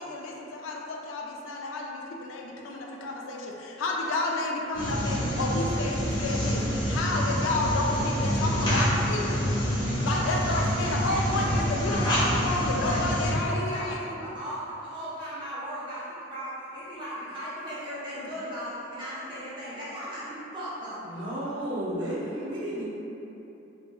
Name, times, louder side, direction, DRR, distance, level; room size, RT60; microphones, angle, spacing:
voice 1, 0.0-9.4 10.0-14.0, left 2 dB, 90° left, -1 dB, 0.4 m, -31 dB
sound 1, 4.7-13.3, equal, 20° left, 0.5 m, -27 dB
voice 2, 10.1-11.5 11.8-21.0, equal, 25° right, -11 dB, 0.8 m, -37 dB
voice 3, 21.0-22.8, right 1 dB, 65° right, -9 dB, 0.8 m, -32 dB
2.7 x 2.6 x 2.3 m, 3.0 s
head